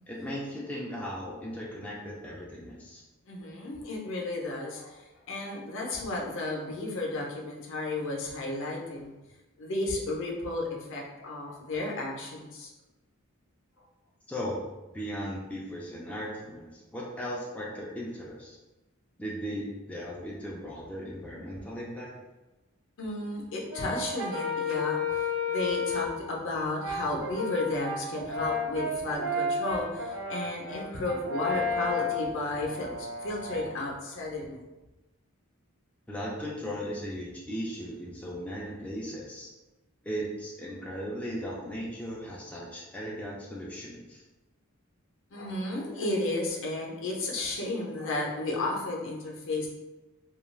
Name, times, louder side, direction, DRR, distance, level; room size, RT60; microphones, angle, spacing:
voice 1, 0.1-3.0 14.3-14.6 14.9-18.6 19.2-22.1 36.1-39.5 40.0-44.2, equal, 5° left, -5 dB, 0.3 m, -37 dB
voice 2, 3.3-9.1 9.6-12.7 23.0-34.6 45.3-49.7, left 2 dB, 60° left, -1 dB, 0.5 m, -33 dB
Brass instrument, 23.7-26.2 26.8-33.8, left 3 dB, 80° right, 0.5 m, -32 dB
2.3 x 2.3 x 3.1 m, 1.1 s
head